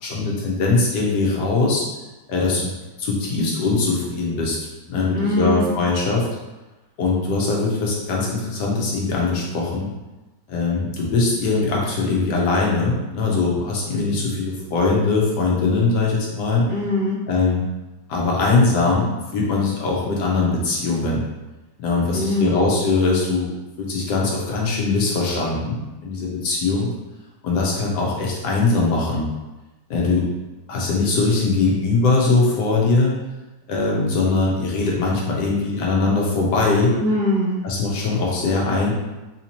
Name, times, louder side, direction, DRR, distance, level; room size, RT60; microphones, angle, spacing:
voice 1, 0.0-1.8 2.3-2.7 3.0-4.6 4.9-6.3 7.0-9.9 10.5-16.7 17.3-17.6 18.1-21.2 21.8-23.5 23.8-26.9 27.4-29.3 29.9-30.3 30.7-33.1 33.7-36.9 37.6-38.9, left 3 dB, 85° left, -3 dB, 1.4 m, -21 dB
voice 2, 5.1-5.8 16.7-17.3 22.1-22.7 37.0-37.6, left 1 dB, 55° right, -7 dB, 1.5 m, -22 dB
4.1 x 2.8 x 2.9 m, 1.1 s
omnidirectional pair, 1.8 m